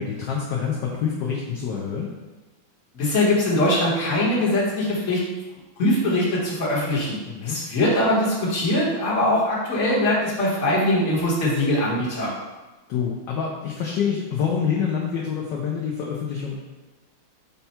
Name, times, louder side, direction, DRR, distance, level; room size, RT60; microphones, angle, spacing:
voice 1, 0.0-2.1 7.3-7.6 12.9-16.6, left 7 dB, 70° left, -2 dB, 1.1 m, -26 dB
voice 2, 2.9-5.2 5.8-12.3, left 1 dB, 40° left, -6 dB, 1.4 m, -22 dB
5.4 x 2.3 x 4.2 m, 1.2 s
omnidirectional pair, 2.2 m